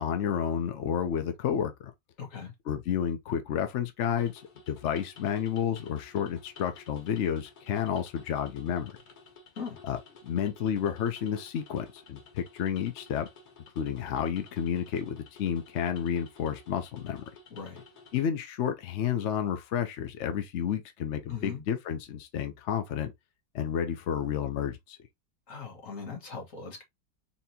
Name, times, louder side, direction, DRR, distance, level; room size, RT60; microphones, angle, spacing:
voice 1, 0.0-1.9 2.7-4.4 4.7-9.0 9.9-10.0 10.2-13.3 13.8-17.2 18.1-23.1 23.5-25.0, left 8 dB, 65° left, 0.7 m, -31 dB
voice 2, 2.2-2.5 9.6-9.8 17.5-17.8 21.3-21.6 25.5-26.8, left 6 dB, 50° left, 1.8 m, -39 dB
sound 1, 4.2-18.2, left 4 dB, 90° left, 1.9 m, -53 dB
4.3 x 3.4 x 2.7 m
omnidirectional pair, 1.9 m